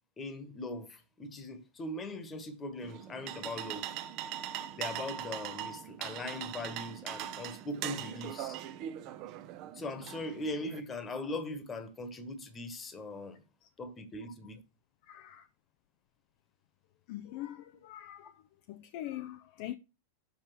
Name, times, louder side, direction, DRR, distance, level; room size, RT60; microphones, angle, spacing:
voice 1, 0.2-3.9 4.8-8.6 9.7-13.4 13.8-14.6, left 2 dB, 20° left, 1.4 m, -40 dB
sound 1, 2.8-10.8, right 11 dB, 40° right, 0.7 m, -41 dB
voice 2, 15.0-15.5 17.1-19.8, left 14 dB, 45° left, 0.5 m, -43 dB
7.2 x 5.3 x 6.0 m
figure-of-eight pair, 90°, 0 cm